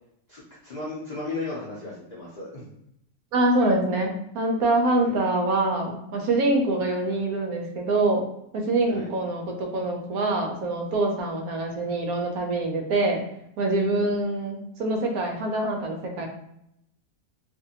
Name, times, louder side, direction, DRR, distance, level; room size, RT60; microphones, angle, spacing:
voice 1, 0.3-2.7 5.0-5.1 8.8-9.1 13.9-14.1, left 3 dB, 65° left, -7 dB, 0.4 m, -35 dB
voice 2, 3.3-8.3 8.5-13.2 13.6-16.3, right 2 dB, 70° right, 1 dB, 1.0 m, -25 dB
2.6 x 2.5 x 2.7 m, 0.77 s
omnidirectional pair, 1.7 m